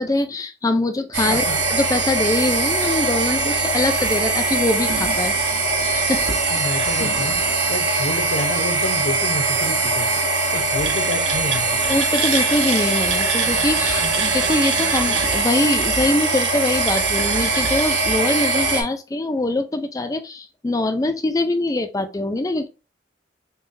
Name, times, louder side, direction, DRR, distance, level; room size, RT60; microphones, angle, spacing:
voice 1, 0.0-5.3 5.9-6.3 11.9-22.7, left 2 dB, 20° left, 0.3 m, -23 dB
sound 1, 1.1-18.8, right 3 dB, 75° right, 0.9 m, -21 dB
voice 2, 1.3-1.6 6.5-7.4 7.7-10.1 10.5-11.9, left 2 dB, 65° left, 0.7 m, -29 dB
5.5 x 2.2 x 2.6 m
head